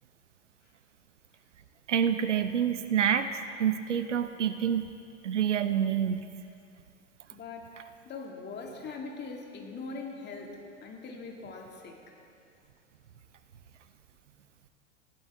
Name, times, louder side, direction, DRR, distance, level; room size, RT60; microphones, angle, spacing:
voice 1, 1.9-3.3 3.6-4.9 5.2-6.3, right 8 dB, 75° right, 10 dB, 0.8 m, -27 dB
voice 2, 7.3-7.7 8.1-12.2, left 4 dB, 30° left, 1 dB, 2.3 m, -41 dB
20.0 x 15.5 x 3.5 m, 2.5 s
figure-of-eight pair, 80°, 37 cm